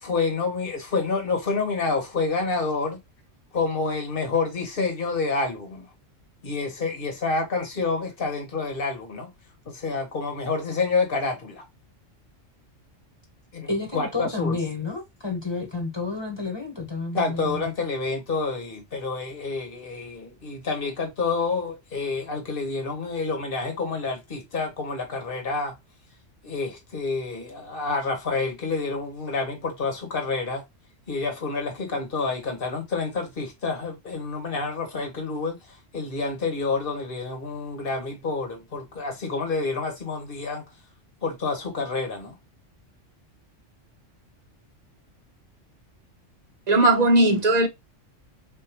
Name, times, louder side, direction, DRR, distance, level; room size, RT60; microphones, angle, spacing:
voice 1, 0.0-3.0 3.5-5.9 6.4-9.3 9.7-11.6 13.5-14.6 17.1-25.7 26.4-30.6 31.1-40.6 41.2-42.3, left 4 dB, 45° left, 1.5 m, -28 dB
voice 2, 13.7-17.7, left 3 dB, 20° left, 1.4 m, -30 dB
voice 3, 46.7-47.7, right 2 dB, 40° right, 0.9 m, -18 dB
4.4 x 3.6 x 3.0 m
omnidirectional pair, 1.3 m